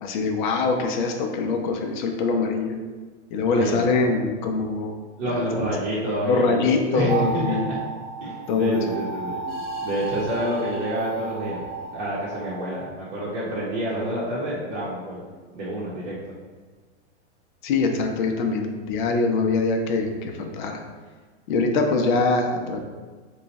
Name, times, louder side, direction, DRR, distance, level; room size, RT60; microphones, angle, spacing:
voice 1, 0.0-2.8 3.3-5.0 5.3-5.4 6.2-7.7 8.5-8.8 17.6-20.8 21.5-22.8, left 3 dB, 45° left, 3 dB, 0.5 m, -23 dB
voice 2, 3.5-3.9 5.2-7.8 8.2-9.4 9.8-11.6 11.9-15.2 15.5-16.2, right 1 dB, 50° right, -8 dB, 0.9 m, -28 dB
sound 1, 7.1-12.9, right 3 dB, 80° right, 0.8 m, -33 dB
3.0 x 2.3 x 4.0 m, 1.4 s
hypercardioid pair, 150°, 35 cm